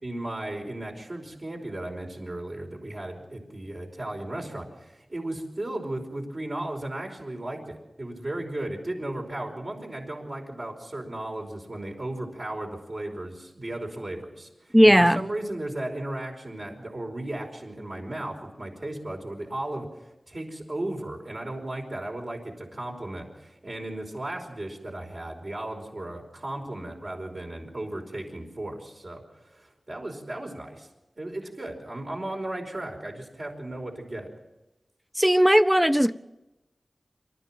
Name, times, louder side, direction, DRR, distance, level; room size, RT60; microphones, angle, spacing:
voice 1, 0.0-14.5 14.8-19.9 20.3-29.2 29.5-30.9 31.2-34.3, right 1 dB, 50° right, 5.1 m, -35 dB
voice 2, 14.7-15.2 35.2-36.1, equal, 5° right, 0.7 m, -17 dB
26.5 x 13.5 x 7.6 m
wide cardioid pair, 65°, 0 cm